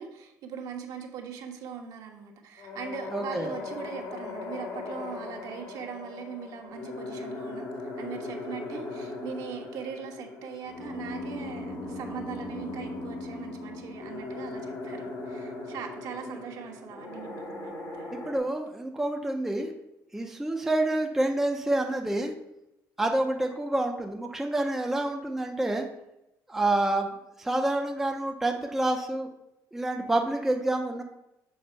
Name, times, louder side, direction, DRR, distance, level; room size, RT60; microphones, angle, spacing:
voice 1, 0.0-7.7 7.9-18.1, right 7 dB, 65° right, 2 dB, 1.2 m, -40 dB
sound 1, 2.6-18.4, left 2 dB, 75° left, 1.8 m, -38 dB
voice 2, 3.1-3.5 16.3-16.4 18.1-19.7 20.1-22.3 23.0-25.9 26.5-29.3 29.7-31.0, right 1 dB, 5° right, 2 dB, 0.6 m, -28 dB
7.0 x 4.2 x 5.4 m, 0.88 s
cardioid pair, 140°, 7 cm